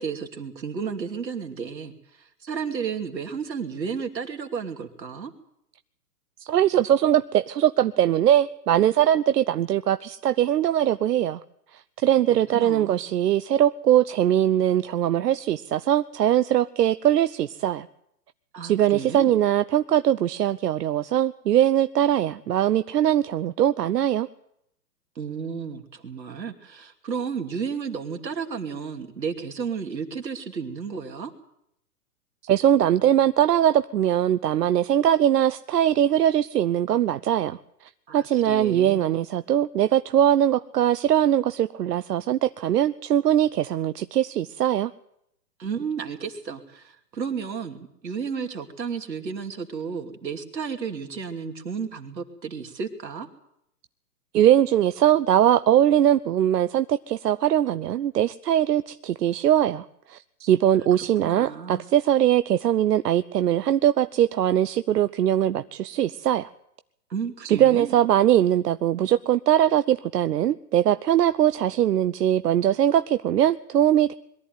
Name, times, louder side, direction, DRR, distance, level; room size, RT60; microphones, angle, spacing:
voice 1, 0.0-5.3 12.3-13.0 18.5-19.3 25.2-31.3 38.1-39.0 45.6-53.3 61.2-61.8 67.1-67.9, right 6 dB, 85° right, 5 dB, 2.8 m, -32 dB
voice 2, 6.4-11.4 12.0-17.9 18.6-24.3 32.4-37.6 38.1-44.9 54.3-66.5 67.4-74.1, right 11 dB, 70° right, 13 dB, 0.8 m, -21 dB
22.5 x 14.0 x 9.3 m, 0.77 s
hypercardioid pair, 130°, 50 cm